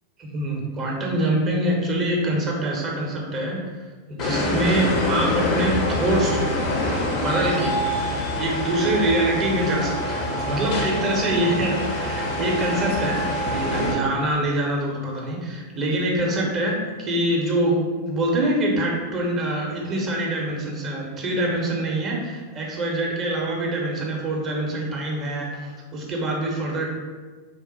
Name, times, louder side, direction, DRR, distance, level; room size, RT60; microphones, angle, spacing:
voice 1, 0.2-3.6 4.1-6.6 7.1-7.8 8.4-26.9, right 1 dB, 30° right, -2 dB, 0.8 m, -25 dB
sound 1, 4.2-13.9, left 1 dB, 45° left, 0.7 m, -25 dB
3.5 x 2.1 x 4.0 m, 1.4 s
figure-of-eight pair, 90°, 0 cm